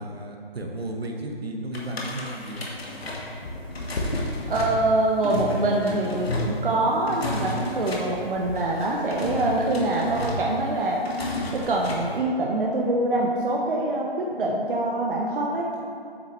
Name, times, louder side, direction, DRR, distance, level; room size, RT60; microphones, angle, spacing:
voice 1, 0.0-2.7, right 1 dB, 80° right, 1 dB, 1.2 m, -33 dB
sound 1, 1.7-12.2, left 1 dB, 80° left, 1.6 m, -32 dB
voice 2, 4.5-11.0 11.5-15.7, right 2 dB, 60° right, -2 dB, 0.9 m, -24 dB
8.3 x 6.4 x 3.1 m, 2.4 s
figure-of-eight pair, 160°, 30 cm